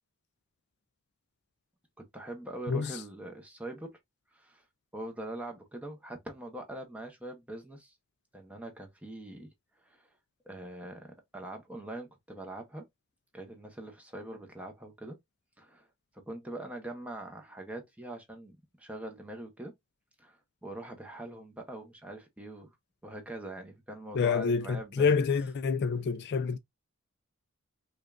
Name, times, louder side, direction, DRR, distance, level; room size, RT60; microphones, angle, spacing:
voice 1, 2.1-4.0 4.3-4.6 4.9-7.9 8.3-9.5 9.8-10.1 10.5-12.8 13.3-15.2 15.6-15.9 16.1-19.7 20.2-22.7 23.0-25.1, right 1 dB, 5° right, 0.8 m, -43 dB
voice 2, 2.7-3.0 24.1-26.6, left 5 dB, 50° left, 0.4 m, -28 dB
5.0 x 2.4 x 2.4 m
head